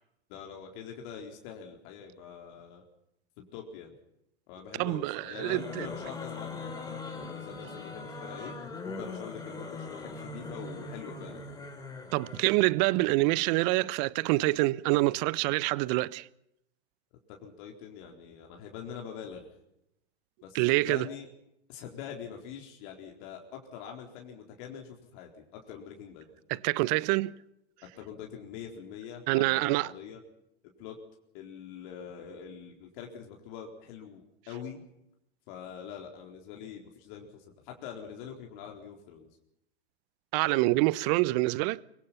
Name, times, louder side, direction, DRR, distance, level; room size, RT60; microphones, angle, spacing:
voice 1, 0.3-2.8 3.4-3.9 4.5-8.5 8.9-11.4 17.3-19.5 20.4-21.3 21.7-26.3 27.9-30.2 30.8-31.0 31.3-34.8 35.5-39.3, left 7 dB, 50° left, 4.2 m, -44 dB
voice 2, 4.8-5.9 12.1-16.3 20.5-21.1 26.5-27.3 29.3-29.9 40.3-41.8, right 21 dB, 40° right, 0.9 m, -26 dB
sound 1, 5.3-12.6, left 3 dB, 10° left, 4.8 m, -41 dB
24.5 x 24.0 x 5.8 m
hypercardioid pair, 110°, 32 cm